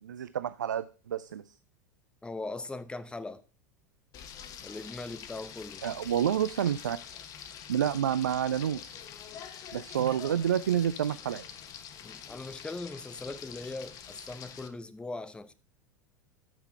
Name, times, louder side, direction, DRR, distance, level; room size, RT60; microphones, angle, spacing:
voice 1, 0.0-1.5 5.8-7.0 7.7-9.0 9.7-11.5, right 9 dB, 75° right, 0.4 m, -29 dB
voice 2, 2.2-3.4 4.6-5.8 12.0-15.5, left 3 dB, 10° left, 0.7 m, -40 dB
Frying (food), 4.1-14.7, left 8 dB, 35° left, 0.9 m, -46 dB
13.0 x 5.8 x 3.2 m
figure-of-eight pair, 80°, 10 cm